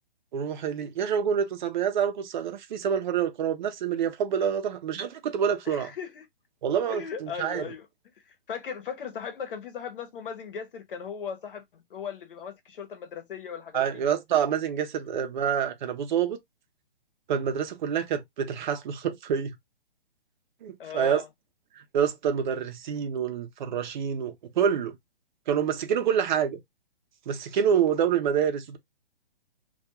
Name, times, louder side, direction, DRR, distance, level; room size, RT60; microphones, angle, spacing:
voice 1, 0.3-5.9 6.6-7.7 13.7-16.4 17.3-19.5 20.6-21.2 21.9-24.9 25.5-26.6 27.3-28.8, right 8 dB, 50° right, 0.6 m, -27 dB
voice 2, 5.6-6.3 6.9-7.9 8.2-14.0 20.8-21.3, left 7 dB, 60° left, 0.9 m, -37 dB
2.3 x 2.3 x 2.8 m
hypercardioid pair, 150°, 31 cm